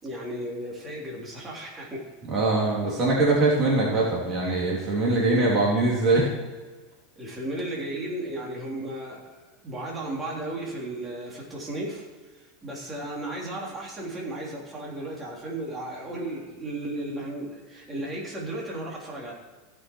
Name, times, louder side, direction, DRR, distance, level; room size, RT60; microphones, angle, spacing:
voice 1, 0.0-2.1 7.2-12.0 12.4-19.3, right 1 dB, 20° right, -4 dB, 3.5 m, -35 dB
voice 2, 2.3-6.3, right 2 dB, 35° right, -4 dB, 3.1 m, -22 dB
16.0 x 6.4 x 4.6 m, 1.3 s
supercardioid pair, 125°, 0 cm